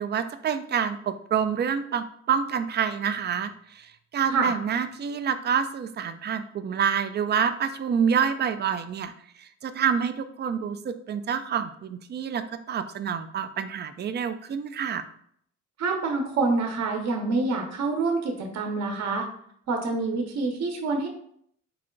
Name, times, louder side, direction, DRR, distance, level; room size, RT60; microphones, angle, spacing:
voice 1, 0.0-9.1 9.4-15.0, right 7 dB, 35° right, 10 dB, 0.4 m, -27 dB
voice 2, 15.8-19.3 19.7-21.1, right 3 dB, 60° right, 3 dB, 0.9 m, -26 dB
4.8 x 2.2 x 3.8 m, 0.67 s
cardioid pair, 90°, 30 cm